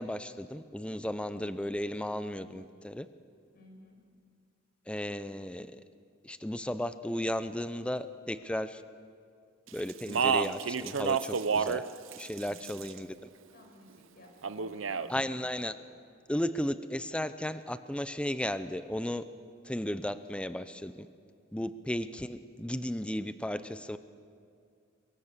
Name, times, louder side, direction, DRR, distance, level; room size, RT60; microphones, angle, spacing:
voice 1, 0.0-3.1 4.9-5.7 6.2-8.8 9.7-11.8 12.2-13.1 15.1-15.8 16.3-19.2 19.6-21.1 21.5-24.0, left 1 dB, 5° left, 12 dB, 0.6 m, -34 dB
voice 2, 3.5-4.0 12.3-13.1 13.5-15.5 21.5-21.7, equal, 50° left, 1 dB, 6.0 m, -56 dB
Speech, 9.9-11.8 12.1-13.0 14.4-15.1, right 6 dB, 75° right, 0.7 m, -29 dB
23.5 x 22.5 x 6.7 m, 2.2 s
head